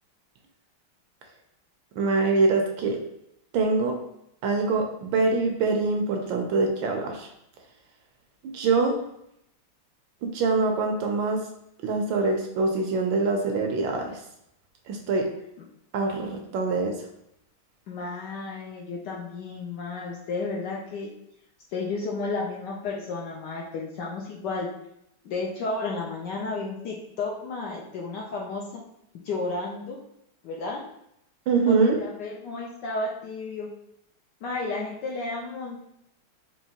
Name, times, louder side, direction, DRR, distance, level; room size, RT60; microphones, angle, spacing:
voice 1, 2.0-3.0 3.5-3.9 4.4-7.3 8.5-9.0 10.2-11.4 11.8-14.1 14.9-15.3 15.9-16.9 31.5-32.0, right 3 dB, 75° right, 3 dB, 1.2 m, -24 dB
voice 2, 17.9-21.1 21.7-24.7 25.2-28.8 29.2-30.0 30.4-30.8 31.7-33.7 34.4-35.8, left 3 dB, 75° left, -2 dB, 1.0 m, -32 dB
4.5 x 2.9 x 2.8 m, 0.77 s
omnidirectional pair, 2.4 m